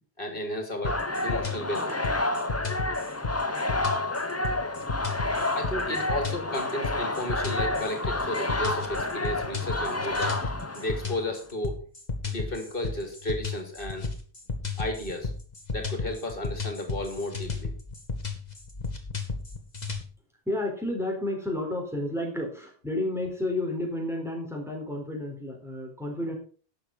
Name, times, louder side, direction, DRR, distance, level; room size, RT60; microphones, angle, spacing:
voice 1, 0.2-2.0 5.2-10.5 10.7-11.8 12.2-14.1 14.8-15.3 15.7-17.7, left 1 dB, 60° left, 5 dB, 3.1 m, -33 dB
sound 1, 0.8-20.0, left 4 dB, 40° left, 2.0 m, -34 dB
sound 2, 0.8-11.3, left 2 dB, 15° left, 0.8 m, -30 dB
voice 2, 20.5-26.3, left 1 dB, ahead, 0 dB, 4.2 m, -31 dB
11.5 x 7.9 x 5.5 m, 0.40 s
omnidirectional pair, 1.1 m